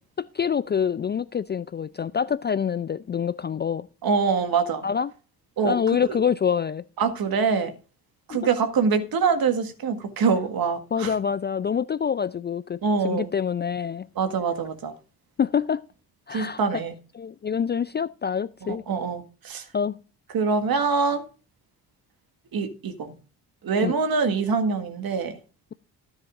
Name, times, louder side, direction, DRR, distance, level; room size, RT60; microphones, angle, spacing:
voice 1, 0.2-3.9 4.8-5.1 5.6-6.8 8.3-8.4 10.9-14.1 15.4-15.8 16.3-16.8 17.2-18.8 19.7-20.0 23.8-23.9, left 7 dB, 25° left, 0.4 m, -26 dB
voice 2, 4.0-4.8 5.6-5.8 7.0-7.7 8.3-11.1 12.8-13.3 14.2-14.9 16.3-16.9 18.7-19.6 20.3-21.2 22.5-23.1 23.6-25.4, right 5 dB, 50° right, 1.8 m, -24 dB
13.0 x 10.0 x 2.5 m
hypercardioid pair, 45°, 45 cm